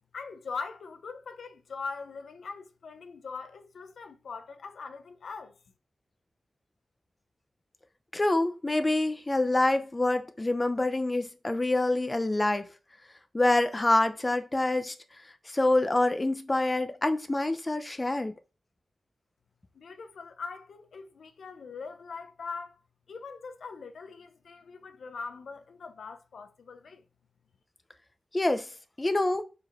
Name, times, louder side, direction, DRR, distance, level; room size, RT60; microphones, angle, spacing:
voice 1, 0.1-5.5 19.7-22.8 23.1-27.0, left 4 dB, 85° left, 0.8 m, -41 dB
voice 2, 8.1-12.7 13.3-14.9 15.5-18.3 28.3-28.7 29.0-29.4, left 2 dB, 25° left, 0.8 m, -26 dB
5.0 x 4.8 x 5.7 m
wide cardioid pair, 95°, 0 cm